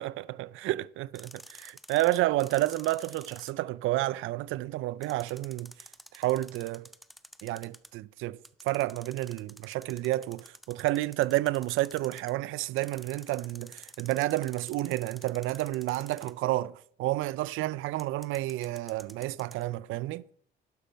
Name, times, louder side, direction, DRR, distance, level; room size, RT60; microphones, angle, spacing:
voice 1, 0.0-5.7 6.1-6.9 7.4-8.4 8.6-20.2, right 17 dB, 90° right, 0.4 m, -30 dB
sound 1, 1.2-3.5 5.0-7.9 8.4-12.3 12.8-16.5 18.0-19.6, equal, ahead, 0.6 m, -50 dB
12.0 x 5.6 x 6.5 m
cardioid pair, 90°, 20 cm